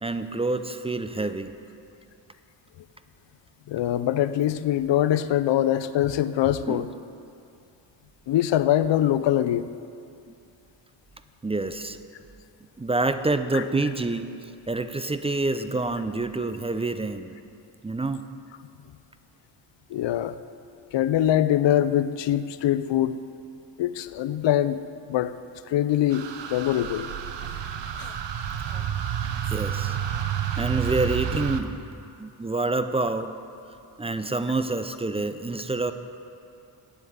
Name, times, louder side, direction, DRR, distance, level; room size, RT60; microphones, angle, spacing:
voice 1, 0.0-1.5 6.7-6.8 11.4-12.0 12.8-14.3 14.7-17.4 17.8-18.2 28.7-28.8 29.5-30.0 30.6-31.8 32.2-33.3 34.0-35.9, right 2 dB, 15° right, 10 dB, 0.4 m, -27 dB
voice 2, 3.7-6.9 8.3-9.7 13.5-13.6 19.9-20.4 20.9-23.2 23.8-24.8 25.1-25.3 25.7-26.3 26.5-27.1 28.0-28.1, left 12 dB, 65° left, 14 dB, 0.6 m, -23 dB
sound 1, 26.1-31.6, right 9 dB, 65° right, 0.9 m, -30 dB
9.3 x 8.4 x 7.9 m, 2.6 s
cardioid pair, 90°, 47 cm